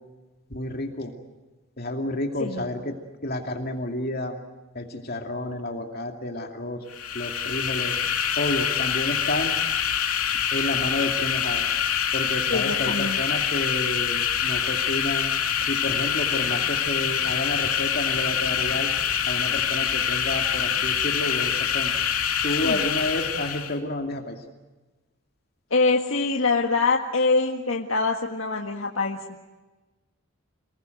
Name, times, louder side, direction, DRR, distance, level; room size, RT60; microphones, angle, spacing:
voice 1, 0.5-1.1 1.8-2.9 3.2-4.4 4.7-6.8 7.1-7.9 8.4-9.5 10.5-11.7 12.1-15.3 15.7-18.9 19.3-21.9 22.4-24.4, left 1 dB, 45° left, 3 dB, 2.6 m, -30 dB
voice 2, 2.4-2.7 12.5-13.2 22.6-22.8 25.7-29.2, left 3 dB, 65° left, 1 dB, 1.8 m, -24 dB
sound 1, 6.9-23.8, left 8 dB, 85° left, 2.9 m, -25 dB
28.0 x 20.5 x 7.9 m, 1.2 s
head